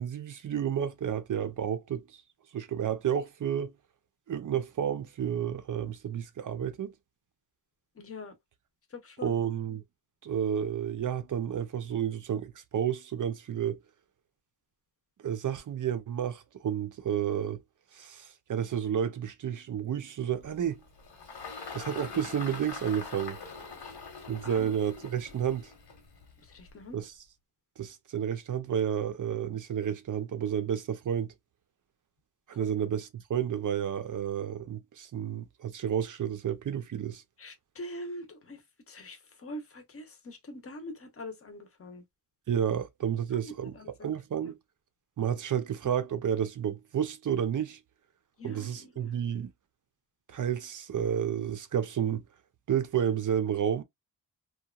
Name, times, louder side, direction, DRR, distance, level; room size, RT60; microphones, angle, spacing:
voice 1, 0.0-2.1 2.5-3.7 4.3-6.9 9.2-9.8 10.2-13.8 15.2-17.6 17.9-20.8 21.7-23.4 24.3-25.7 26.9-27.1 27.8-31.3 32.5-37.2 42.5-43.7 44.0-44.6 45.2-47.8 48.4-49.5 50.3-52.2 52.7-53.8, right 9 dB, 55° right, 0.5 m, -31 dB
voice 2, 8.0-8.4 8.9-9.4 23.8-24.0 24.4-24.7 26.4-27.0 32.6-32.8 37.4-42.0 43.3-44.1 44.4-44.5 48.4-49.1, left 1 dB, 35° left, 0.7 m, -44 dB
Engine, 20.4-27.0, left 4 dB, 80° left, 1.1 m, -44 dB
2.8 x 2.2 x 2.3 m
wide cardioid pair, 155°, 40 cm